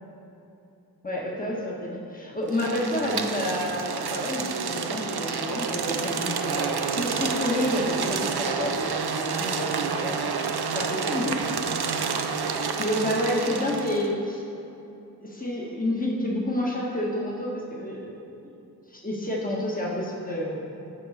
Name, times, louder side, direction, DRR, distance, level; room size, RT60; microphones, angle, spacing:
voice 1, 1.0-10.2 10.7-10.8 11.1-11.4 12.3-12.4 12.8-14.4 15.2-18.5 18.9-20.6, left 1 dB, 20° left, -4 dB, 1.5 m, -29 dB
sound 1, 2.5-14.1, right 5 dB, 80° right, 0.6 m, -29 dB
13.5 x 4.8 x 4.2 m, 2.8 s
wide cardioid pair, 50°, 38 cm